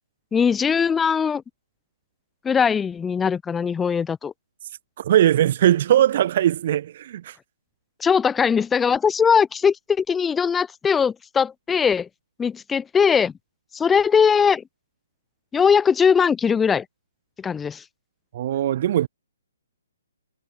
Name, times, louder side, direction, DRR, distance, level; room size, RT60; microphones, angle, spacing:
voice 1, 0.3-1.4 2.4-4.3 8.0-12.1 12.4-13.3 13.7-14.6 15.5-16.8 17.4-17.8, left 6 dB, 10° left, 1.2 m, -20 dB
voice 2, 5.0-7.4 18.3-19.1, right 11 dB, 45° right, 0.9 m, -20 dB
figure-of-eight pair, 130°, 0 cm